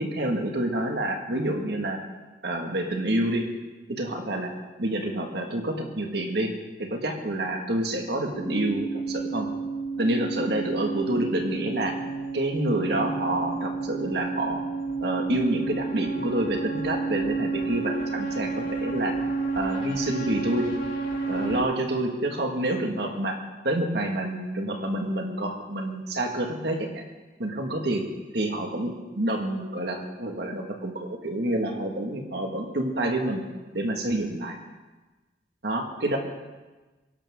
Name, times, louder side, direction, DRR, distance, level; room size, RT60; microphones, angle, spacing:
voice 1, 0.0-2.0 2.4-3.4 3.9-4.5 4.8-6.5 6.8-9.5 10.0-12.0 12.3-14.6 15.0-19.1 19.6-20.7 21.3-23.4 23.6-27.0 27.4-28.0 28.3-33.4 33.7-34.6 35.6-36.2, right 1 dB, 60° right, 2 dB, 2.0 m, -28 dB
sound 1, 8.3-21.6, right 4 dB, 80° left, 3.1 m, -30 dB
23.5 x 12.0 x 3.8 m, 1.2 s
head